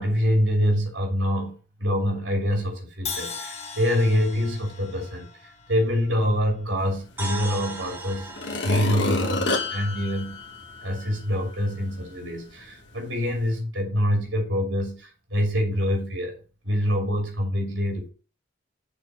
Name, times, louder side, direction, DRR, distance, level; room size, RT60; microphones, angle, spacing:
voice 1, 0.0-8.3 8.6-10.4 10.8-16.4 16.6-18.1, equal, 85° right, 2.9 m, -25 dB
Crash cymbal, 3.1-7.1, left 5 dB, 35° left, 1.2 m, -39 dB
sound 1, 7.2-11.1, right 2 dB, 10° right, 1.4 m, -39 dB
sound 2, 7.6-7.7 8.3-11.1 11.6-11.7, left 2 dB, 70° left, 1.2 m, -29 dB
6.9 x 4.3 x 6.7 m
head